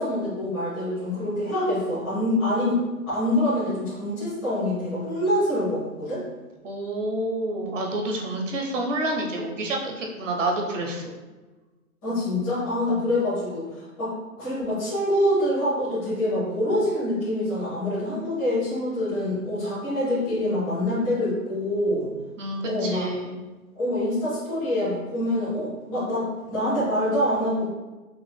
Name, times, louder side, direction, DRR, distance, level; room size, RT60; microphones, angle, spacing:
voice 1, 0.0-2.8 3.1-6.2 12.0-22.1 22.6-23.1 23.7-27.7, left 1 dB, 5° left, -16 dB, 0.7 m, -25 dB
voice 2, 6.6-11.1 12.9-13.0 22.4-23.3, right 1 dB, 55° right, 1 dB, 1.0 m, -28 dB
5.8 x 3.6 x 2.2 m, 1.2 s
hypercardioid pair, 180°, 44 cm